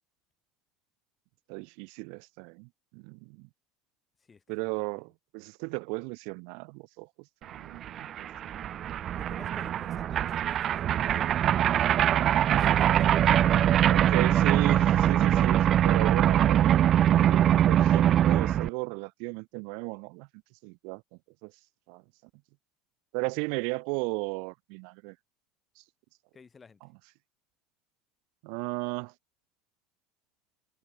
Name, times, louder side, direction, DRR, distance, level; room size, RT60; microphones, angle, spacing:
voice 1, 1.5-3.5 4.5-7.1 7.4-8.7 13.9-20.3 20.6-21.5 21.9-22.0 23.1-25.1 25.8-25.9 28.4-29.1, right 39 dB, 70° right, 1.7 m, -35 dB
voice 2, 4.2-4.7 9.2-13.1 13.5-13.7 26.3-26.8, left 5 dB, 25° left, 4.4 m, -53 dB
sound 1, 7.6-7.7 7.8-18.7, right 11 dB, 45° right, 0.6 m, -23 dB
hypercardioid pair, 85°, 0 cm